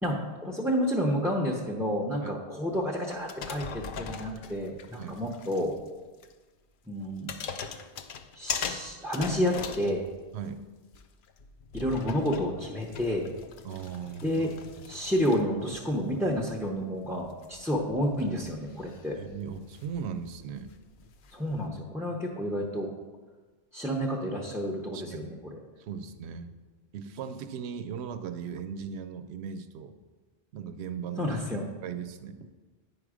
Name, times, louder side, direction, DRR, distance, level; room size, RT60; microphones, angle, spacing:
voice 1, 0.0-5.7 6.9-7.7 8.4-10.0 11.7-13.3 14.2-14.5 14.9-19.2 21.3-22.9 23.7-25.6 31.2-31.7, equal, 5° right, -3 dB, 0.6 m, -30 dB
sound 1, 3.2-5.9 6.2-6.3 7.0-10.5 10.9-21.7, left 6 dB, 60° left, 0.6 m, -41 dB
voice 2, 10.3-10.6 13.6-14.5 19.1-20.7 22.1-22.2 24.9-25.4 25.8-26.5 26.9-29.9 30.5-31.3 31.8-32.4, right 7 dB, 75° right, 10 dB, 0.9 m, -38 dB
9.5 x 5.0 x 4.9 m, 1.3 s
omnidirectional pair, 1.1 m